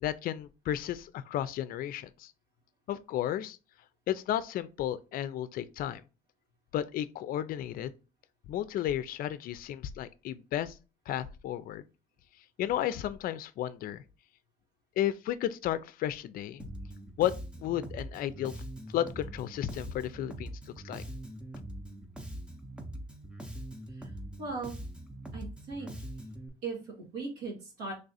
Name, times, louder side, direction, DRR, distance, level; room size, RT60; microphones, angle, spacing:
voice 1, 0.0-2.3 2.9-3.6 4.1-6.0 6.7-7.9 8.5-10.8 11.1-11.8 12.6-14.0 15.0-16.7 17.2-17.3 17.6-18.6 18.9-20.5 20.8-21.0, left 11 dB, 60° left, 0.4 m, -33 dB
Bass guitar, 16.6-26.5, right 1 dB, 5° right, 0.6 m, -43 dB
voice 2, 24.4-24.8 25.3-25.9 26.6-27.9, right 3 dB, 85° right, 1.5 m, -38 dB
3.3 x 2.4 x 4.0 m
cardioid pair, 110°, 17 cm